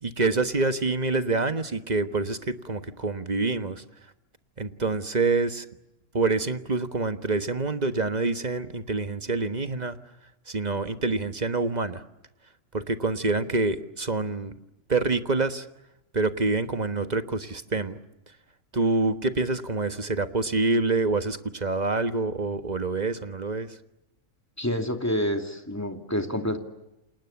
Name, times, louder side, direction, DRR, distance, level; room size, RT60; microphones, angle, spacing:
voice 1, 0.0-3.8 4.6-5.6 6.1-10.0 10.5-12.0 12.7-14.5 14.9-15.7 16.1-18.0 18.7-23.8, right 3 dB, 35° right, 9 dB, 1.4 m, -26 dB
voice 2, 24.6-26.6, equal, 10° left, 5 dB, 2.7 m, -28 dB
29.5 x 27.5 x 7.1 m, 0.93 s
omnidirectional pair, 1.4 m